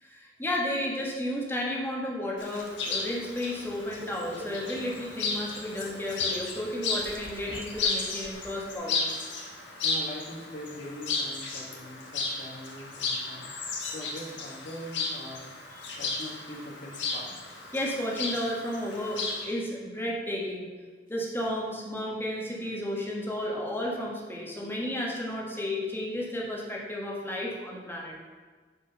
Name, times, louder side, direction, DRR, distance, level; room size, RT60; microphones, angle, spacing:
voice 1, 0.0-9.3 15.7-15.8 17.7-20.7 21.1-28.2, left 1 dB, 15° left, -3 dB, 1.7 m, -33 dB
Chirp tweet, 2.4-19.5, left 4 dB, 80° left, 1.7 m, -34 dB
sound 1, 2.6-8.7, right 1 dB, 30° right, 0.8 m, -48 dB
voice 2, 9.8-13.5 13.9-17.3, equal, 50° left, -2 dB, 1.9 m, -42 dB
8.5 x 5.1 x 5.6 m, 1.4 s
head